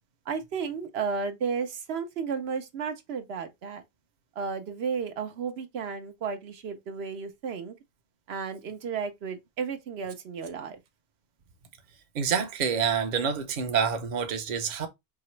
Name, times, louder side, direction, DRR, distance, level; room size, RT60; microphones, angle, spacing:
voice 1, 0.3-3.8 4.4-7.7 8.3-10.8, right 5 dB, 80° right, 1.0 m, -33 dB
voice 2, 12.1-14.9, right 6 dB, 50° right, 0.8 m, -27 dB
4.7 x 2.9 x 3.1 m
omnidirectional pair, 1.0 m